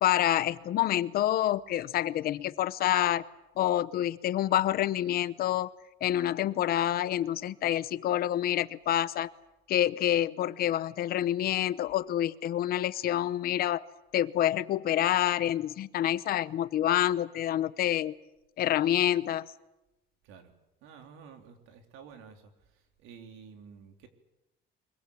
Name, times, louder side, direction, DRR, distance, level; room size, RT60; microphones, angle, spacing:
voice 1, 0.0-3.2 3.6-5.7 6.0-9.3 9.7-13.8 14.1-18.1 18.6-19.4, left 12 dB, 50° left, 16 dB, 0.8 m, -27 dB
voice 2, 20.8-22.5 23.0-24.1, right 6 dB, 90° right, 5 dB, 3.8 m, -50 dB
24.5 x 22.5 x 8.6 m, 0.94 s
cardioid pair, 175°, 20 cm